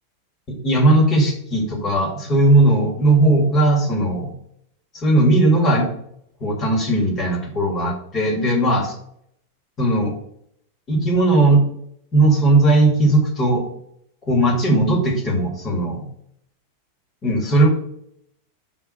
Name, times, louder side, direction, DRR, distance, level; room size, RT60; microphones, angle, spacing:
voice 1, 0.5-4.3 4.9-5.9 6.4-8.9 9.8-10.1 10.9-11.6 12.1-13.6 14.2-16.0 17.2-17.7, right 2 dB, 25° left, 2 dB, 2.1 m, -17 dB
5.6 x 4.6 x 6.5 m, 0.72 s
supercardioid pair, 140°, 0 cm